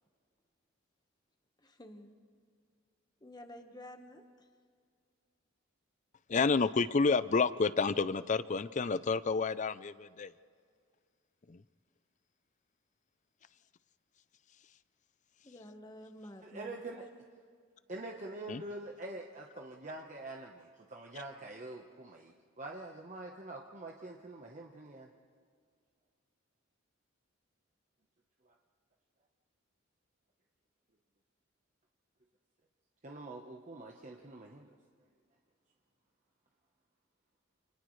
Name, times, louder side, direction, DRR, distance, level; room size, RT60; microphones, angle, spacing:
voice 1, 1.6-2.2 3.2-4.5 15.4-17.1, left 1 dB, 20° left, 5 dB, 1.3 m, -51 dB
voice 2, 6.3-10.3 11.5-11.6 18.5-18.6, left 4 dB, 35° left, 15 dB, 0.5 m, -29 dB
voice 3, 16.4-17.1 17.9-25.1 28.4-28.5 33.0-34.7, right 2 dB, 40° right, 0 dB, 1.1 m, -45 dB
29.5 x 28.0 x 3.3 m, 2.1 s
head